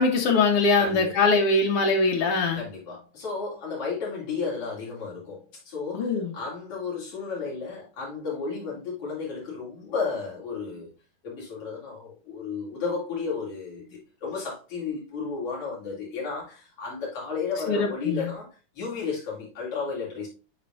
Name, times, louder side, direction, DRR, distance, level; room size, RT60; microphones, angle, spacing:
voice 1, 0.0-2.6 5.9-6.3 17.7-18.3, left 3 dB, 70° left, 1.4 m, -22 dB
voice 2, 0.8-1.3 2.5-10.9 11.2-18.5 18.8-20.3, left 5 dB, 40° left, 4.3 m, -33 dB
10.5 x 4.4 x 2.6 m
omnidirectional pair, 4.1 m